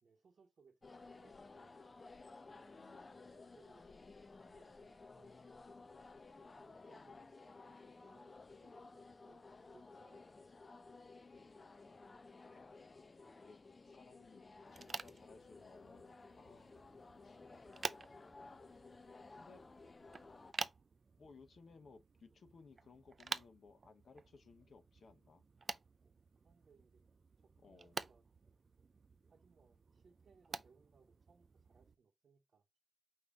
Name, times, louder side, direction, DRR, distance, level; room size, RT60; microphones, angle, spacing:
voice 1, 0.0-1.8 2.4-5.4 6.0-10.4 11.3-11.5 26.4-27.0 27.4-28.7 29.3-32.8, right 5 dB, 70° right, 0.8 m, -70 dB
sound 1, 0.8-20.5, left 3 dB, 35° left, 0.3 m, -56 dB
voice 2, 2.8-3.2 6.8-7.1 9.6-9.7 12.5-13.0 13.4-13.6 13.9-14.4 14.7-16.8 17.2-17.5 19.3-19.6 21.2-25.4 27.6-28.0, left 4 dB, 65° left, 0.8 m, -62 dB
sound 2, 14.7-32.0, right 4 dB, 50° right, 0.4 m, -50 dB
5.3 x 2.8 x 3.5 m
wide cardioid pair, 115°, 0 cm